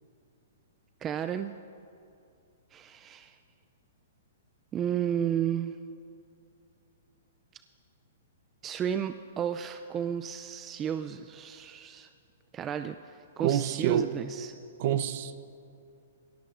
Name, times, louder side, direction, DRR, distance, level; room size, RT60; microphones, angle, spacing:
voice 1, 1.0-1.5 2.7-3.4 4.7-5.7 8.6-12.1 12.5-13.0 13.4-14.5, right 9 dB, 20° right, 9 dB, 0.3 m, -32 dB
voice 2, 13.4-14.1 14.8-15.3, right 10 dB, 50° right, 11 dB, 0.7 m, -27 dB
20.0 x 17.5 x 2.5 m, 2.5 s
hypercardioid pair, 155°, 0 cm